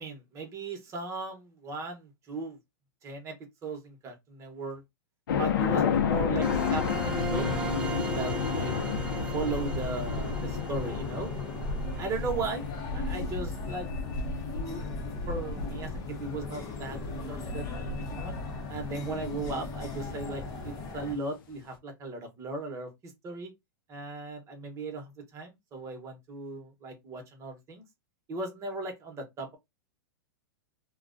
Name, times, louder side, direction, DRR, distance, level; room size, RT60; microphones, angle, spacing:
voice 1, 0.0-2.6 3.0-3.4 3.6-4.8 5.3-7.5 8.1-8.8 9.3-11.3 12.0-12.6 12.9-13.9 14.5-14.8 15.3-18.4 18.7-23.5 23.9-27.8 28.3-29.6, right 3 dB, 25° right, 0.9 m, -37 dB
sound 1, 5.3-20.4, left 6 dB, 75° left, 0.6 m, -32 dB
sound 2, 6.4-13.1, right 3 dB, 10° right, 0.4 m, -38 dB
sound 3, 9.5-21.2, left 3 dB, 30° left, 0.8 m, -39 dB
2.4 x 2.2 x 2.5 m
hypercardioid pair, 130°, 11 cm